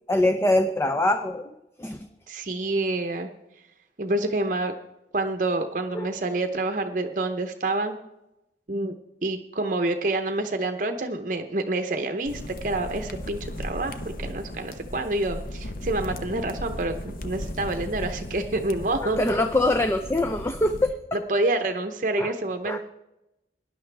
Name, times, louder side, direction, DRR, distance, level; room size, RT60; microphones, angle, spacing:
voice 1, 0.1-1.5 1.8-2.0 5.9-6.1 19.0-20.9 22.2-22.3 22.7-22.8, left 1 dB, 15° left, 7 dB, 0.5 m, -23 dB
voice 2, 2.3-3.3 4.0-4.7 5.1-8.0 8.7-9.0 9.2-19.2 21.3-22.8, right 2 dB, 45° right, 7 dB, 0.8 m, -27 dB
sound 1, 12.3-20.9, left 1 dB, 50° left, 0.9 m, -36 dB
18.5 x 11.0 x 3.4 m, 0.91 s
head